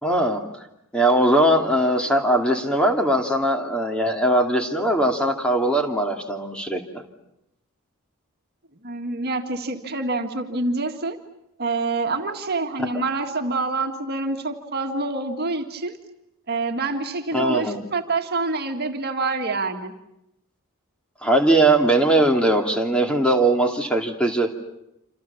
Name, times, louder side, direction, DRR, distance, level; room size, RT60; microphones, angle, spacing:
voice 1, 0.0-0.4 0.9-7.0 17.3-17.8 21.2-24.5, right 1 dB, 5° left, 3 dB, 2.6 m, -20 dB
voice 2, 8.8-11.2 11.6-16.0 16.5-19.9, right 3 dB, 50° right, 4 dB, 1.9 m, -26 dB
28.5 x 27.0 x 7.1 m, 0.85 s
head